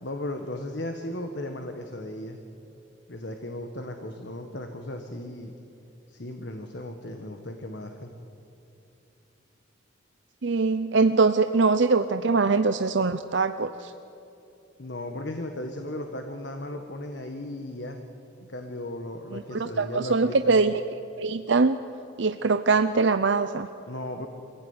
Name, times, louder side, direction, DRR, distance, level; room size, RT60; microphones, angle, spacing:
voice 1, 0.0-2.4 3.1-5.5 6.1-8.1 14.8-18.0 18.4-20.6 23.9-24.3, left 1 dB, 55° left, 5 dB, 1.5 m, -36 dB
voice 2, 10.4-13.9 19.3-20.8 21.2-21.8 22.2-23.7, right 4 dB, 60° right, 9 dB, 0.6 m, -23 dB
25.5 x 16.0 x 9.7 m, 2.8 s
head